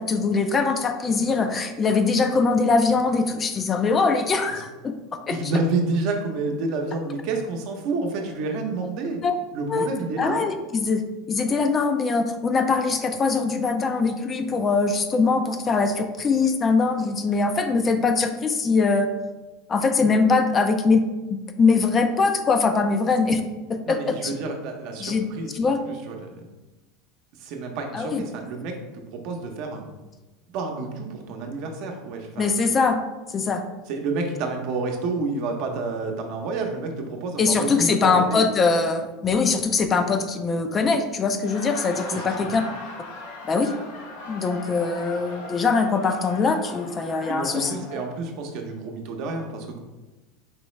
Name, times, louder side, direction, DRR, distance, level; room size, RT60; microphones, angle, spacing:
voice 1, 0.0-4.9 5.3-5.4 9.2-9.3 9.7-9.9 10.2-11.0 11.3-19.1 19.7-21.0 21.6-23.4 23.7-24.3 25.0-25.3 25.5-25.8 27.9-28.2 32.4-33.0 33.3-33.6 37.4-42.6 43.5-43.7 44.3-47.8, left 4 dB, 25° left, 7 dB, 0.4 m, -22 dB
voice 2, 5.3-9.2 9.5-10.4 22.9-23.1 23.9-26.5 27.4-29.8 30.5-32.5 33.9-38.4 42.1-42.5 47.3-49.8, right 3 dB, 60° right, 3 dB, 0.8 m, -29 dB
Laughter, 41.3-48.1, left 3 dB, 85° left, 0.8 m, -38 dB
4.7 x 3.0 x 3.1 m, 1.1 s
supercardioid pair, 115°, 0 cm